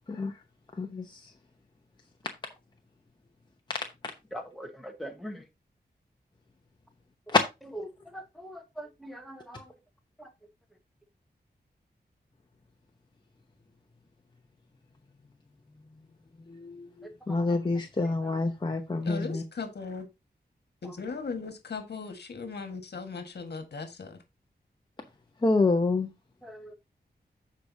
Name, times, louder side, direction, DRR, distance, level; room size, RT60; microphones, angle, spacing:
voice 1, 4.3-5.4 8.1-9.6 10.2-10.3 17.0-17.4 18.2-18.3 26.4-26.7, equal, ahead, 1.4 m, -42 dB
voice 2, 16.5-19.4 25.4-26.1, left 3 dB, 25° left, 0.9 m, -27 dB
voice 3, 19.0-20.1 20.8-24.2, left 4 dB, 75° left, 1.6 m, -38 dB
14.5 x 4.9 x 2.7 m
wide cardioid pair, 130°, 17 cm